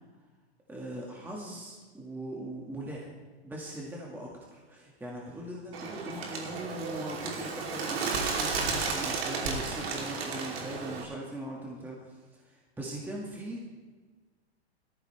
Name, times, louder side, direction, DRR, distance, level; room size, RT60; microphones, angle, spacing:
voice 1, 0.7-3.1 3.4-13.6, right 1 dB, 5° right, -3 dB, 1.7 m, -40 dB
Bird, 5.7-11.0, right 4 dB, 65° right, 3.0 m, -33 dB
17.5 x 14.0 x 3.3 m, 1.4 s
hypercardioid pair, 145°, 33 cm